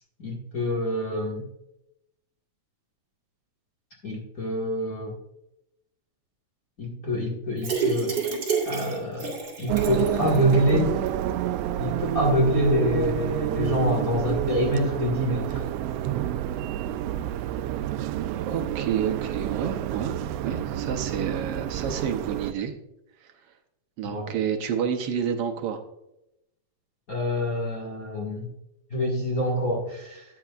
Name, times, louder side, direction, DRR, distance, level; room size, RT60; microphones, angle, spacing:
voice 1, 0.2-1.4 4.0-5.1 6.8-8.2 8.7-9.3 9.6-10.9 11.8-15.7 24.0-24.3 27.1-28.5 28.9-30.2, equal, 35° left, -3 dB, 1.8 m, -26 dB
sound 1, 7.6-10.7 11.1-11.2 11.5-11.6, right 5 dB, 40° right, 2.9 m, -29 dB
sound 2, 9.7-22.5, right 12 dB, 85° right, 1.4 m, -29 dB
voice 2, 18.5-22.7 23.2-23.3 24.0-25.8, right 7 dB, 70° right, 5 dB, 1.6 m, -29 dB
13.5 x 9.2 x 2.4 m, 0.86 s
omnidirectional pair, 3.4 m